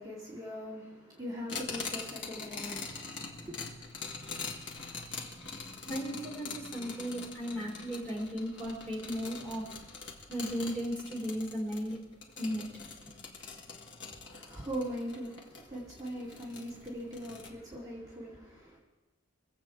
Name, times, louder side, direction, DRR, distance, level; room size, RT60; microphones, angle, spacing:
voice 1, 0.0-3.6 14.3-18.8, equal, 20° right, 2.6 m, -41 dB
sound 1, 1.5-17.5, left 4 dB, 60° left, 1.8 m, -44 dB
voice 2, 5.9-9.8 10.3-12.0 12.4-12.7 13.0-13.1, equal, 5° left, 3.4 m, -36 dB
23.5 x 8.2 x 4.6 m
head